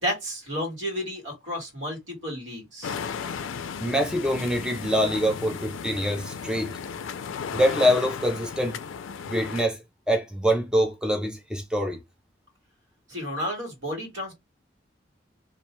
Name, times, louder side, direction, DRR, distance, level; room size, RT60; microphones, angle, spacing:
voice 1, 0.0-3.0 13.1-14.3, equal, 75° right, 1.4 m, -32 dB
sound 1, 2.8-9.6, left 6 dB, 85° left, 0.4 m, -35 dB
voice 2, 3.8-6.8 7.5-8.8 9.3-9.8 10.1-12.0, equal, 5° right, 0.3 m, -24 dB
2.5 x 2.2 x 2.9 m
head